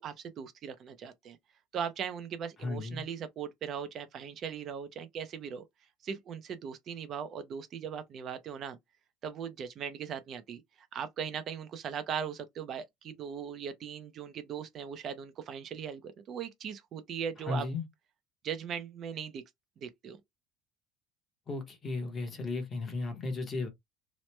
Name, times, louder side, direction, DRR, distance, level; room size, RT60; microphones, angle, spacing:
voice 1, 0.0-1.4 1.7-5.7 6.0-8.8 9.2-17.7 18.4-19.4 19.8-20.2, right 7 dB, 35° right, 0.4 m, -39 dB
voice 2, 2.6-3.0 17.5-17.8 21.5-23.7, left 3 dB, 25° left, 0.8 m, -35 dB
2.9 x 2.0 x 3.2 m
cardioid pair, 150°, 0 cm